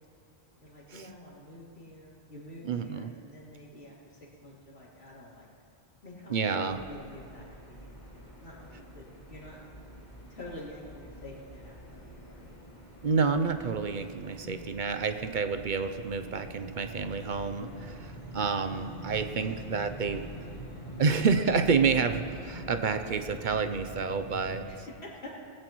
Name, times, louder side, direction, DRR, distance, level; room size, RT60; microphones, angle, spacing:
voice 1, 0.6-5.6 6.0-8.7 8.9-9.6 10.3-12.5 14.4-14.8 17.6-17.9 18.2-18.5 24.7-25.3, left 1 dB, 90° left, -7 dB, 3.6 m, -48 dB
voice 2, 2.6-3.1 6.3-6.8 13.0-17.7 18.3-20.2 21.0-24.6, right 5 dB, 55° right, 8 dB, 0.7 m, -28 dB
sound 1, 6.7-24.6, right 1 dB, 45° left, 3.2 m, -45 dB
20.0 x 15.5 x 3.1 m, 2.3 s
omnidirectional pair, 1.0 m